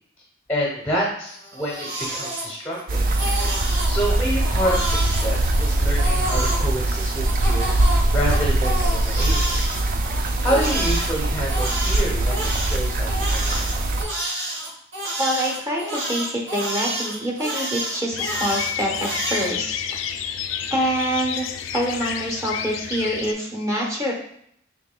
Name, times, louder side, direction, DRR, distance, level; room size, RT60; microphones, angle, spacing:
voice 1, 0.5-3.1 3.8-7.7 8.1-9.6 10.4-13.8, equal, 10° left, -4 dB, 0.7 m, -28 dB
Crying sobbing, 1.3-2.8 3.1-3.9 4.4-6.6 7.2-11.1 11.5-19.5, right 1 dB, 65° right, 1.1 m, -29 dB
sound 1, 2.9-14.1, right 1 dB, 45° right, 0.4 m, -22 dB
voice 2, 15.2-19.8 20.7-21.5 21.7-24.1, equal, 15° right, -2 dB, 0.9 m, -25 dB
sound 2, 18.1-23.3, left 8 dB, 75° left, 0.3 m, -30 dB
5.2 x 3.2 x 2.2 m, 0.68 s
head